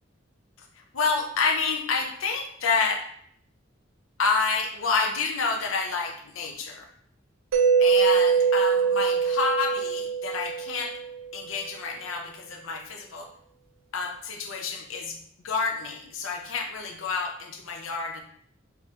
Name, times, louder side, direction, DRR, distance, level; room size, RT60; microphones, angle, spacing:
voice 1, 0.9-3.0 4.2-6.9 7.8-10.9 11.3-13.3 13.9-15.2 15.4-18.2, left 4 dB, 85° left, 2 dB, 0.6 m, -28 dB
Mallet percussion, 7.5-11.3, right 6 dB, 80° right, 0.5 m, -23 dB
4.3 x 2.7 x 3.5 m, 0.64 s
head